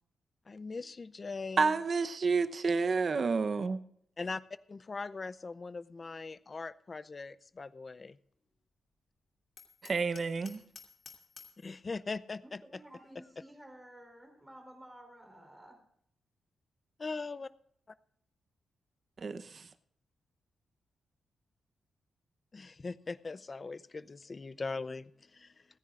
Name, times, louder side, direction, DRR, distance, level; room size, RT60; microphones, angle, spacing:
voice 1, 0.5-1.7 4.2-4.4 4.7-8.2 11.6-12.6 17.0-17.5 22.5-25.7, left 4 dB, 25° left, 0.5 m, -40 dB
voice 2, 1.6-3.8 9.8-10.6 19.2-19.7, right 4 dB, 35° right, 0.8 m, -30 dB
Hammer, 9.6-11.7, left 5 dB, 50° left, 2.6 m, -53 dB
voice 3, 12.4-15.8, right 1 dB, 5° right, 3.7 m, -53 dB
29.5 x 10.0 x 2.5 m
wide cardioid pair, 155°, 0 cm